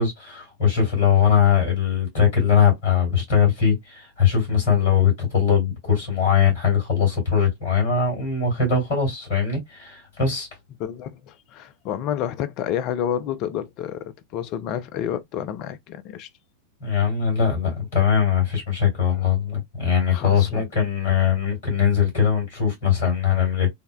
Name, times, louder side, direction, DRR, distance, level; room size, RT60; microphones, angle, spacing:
voice 1, 0.0-10.5 16.8-23.7, left 7 dB, 60° left, 2.2 m, -21 dB
voice 2, 10.8-16.3 20.1-20.6, left 10 dB, 40° left, 0.4 m, -29 dB
3.4 x 2.1 x 2.2 m
figure-of-eight pair, 90°, 0 cm